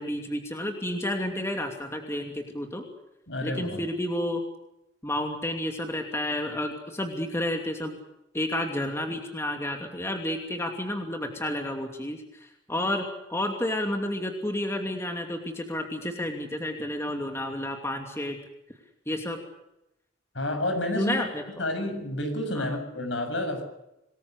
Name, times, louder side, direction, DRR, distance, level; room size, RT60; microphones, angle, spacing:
voice 1, 0.0-2.8 3.4-4.4 5.0-8.0 8.3-18.4 19.1-19.4 21.0-21.4 22.5-22.8, left 1 dB, 15° left, 3 dB, 2.7 m, -31 dB
voice 2, 3.3-3.8 20.3-21.2 21.6-23.6, left 1 dB, 65° left, 6 dB, 7.1 m, -29 dB
27.0 x 20.5 x 6.6 m, 0.88 s
head